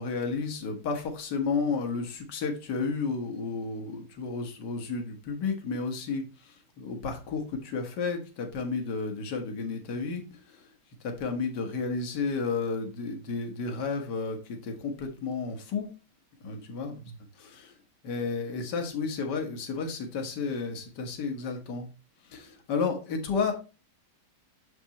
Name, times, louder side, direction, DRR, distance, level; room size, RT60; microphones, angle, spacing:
voice 1, 0.0-6.2 6.8-10.2 11.0-15.9 16.4-17.0 17.4-17.7 18.0-21.9 22.3-23.5, left 4 dB, 60° left, 4 dB, 2.0 m, -32 dB
7.2 x 6.1 x 2.9 m, 0.30 s
omnidirectional pair, 2.2 m